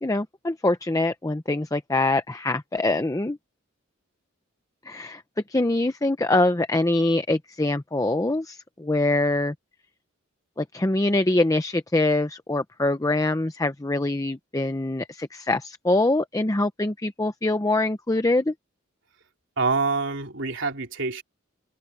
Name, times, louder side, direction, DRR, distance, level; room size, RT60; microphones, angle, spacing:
voice 1, 0.0-3.4 4.9-5.2 5.5-9.5 10.6-18.5, left 2 dB, 15° left, 0.7 m, -24 dB
voice 2, 19.6-21.2, right 4 dB, 65° right, 3.8 m, -26 dB
open air
head